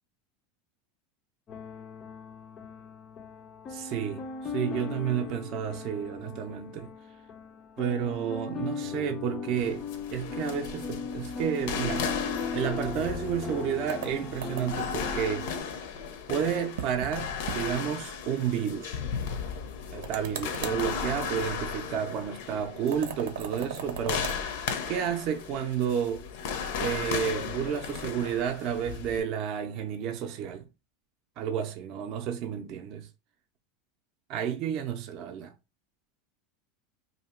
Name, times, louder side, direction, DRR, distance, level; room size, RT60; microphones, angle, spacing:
sound 1, 1.5-15.6, left 5 dB, 25° left, 0.4 m, -38 dB
voice 1, 3.7-6.9 7.8-9.8 10.1-12.1 12.5-15.5 16.3-19.0 19.9-24.4 24.9-26.3 26.8-30.6 31.4-33.1 34.3-35.5, right 8 dB, 40° right, 0.5 m, -31 dB
sound 2, 9.6-29.2, left 6 dB, 65° left, 0.6 m, -36 dB
sound 3, 13.9-14.9 16.8-17.2 17.5-17.6 17.9-18.0 20.0-20.8 22.9-24.4, right 8 dB, 90° right, 0.7 m, -38 dB
2.8 x 2.7 x 4.3 m
supercardioid pair, 165°, 0 cm